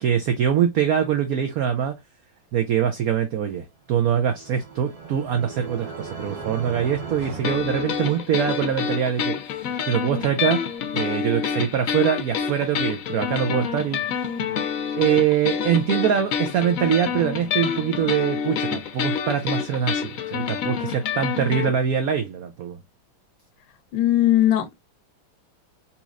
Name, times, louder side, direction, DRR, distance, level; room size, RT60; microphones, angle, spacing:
voice 1, 0.0-2.0 2.5-9.3 9.8-10.6 10.9-14.0 14.9-22.8, right 8 dB, 90° right, 0.7 m, -23 dB
sound 1, 4.0-8.5, right 4 dB, 50° right, 1.5 m, -37 dB
sound 2, 7.4-21.7, left 7 dB, 65° left, 0.8 m, -28 dB
voice 2, 23.9-24.8, left 13 dB, 85° left, 1.5 m, -19 dB
4.1 x 2.9 x 2.4 m
omnidirectional pair, 2.2 m